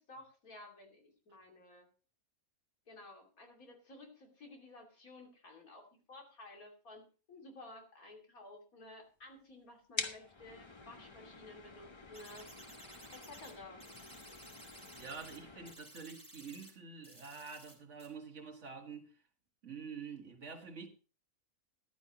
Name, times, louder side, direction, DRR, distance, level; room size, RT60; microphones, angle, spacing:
voice 1, 0.0-1.9 2.9-7.0 7.3-12.5 13.1-13.8, left 2 dB, 70° left, 3.1 m, -54 dB
sound 1, 10.0-15.7, left 3 dB, 25° left, 0.7 m, -47 dB
sound 2, 12.1-13.5 13.8-15.4 15.7-16.7 17.0-17.7 18.0-18.1, right 1 dB, 5° left, 3.5 m, -55 dB
voice 2, 15.0-19.1 19.6-20.9, right 5 dB, 55° right, 1.9 m, -47 dB
14.0 x 11.5 x 3.0 m
omnidirectional pair, 1.5 m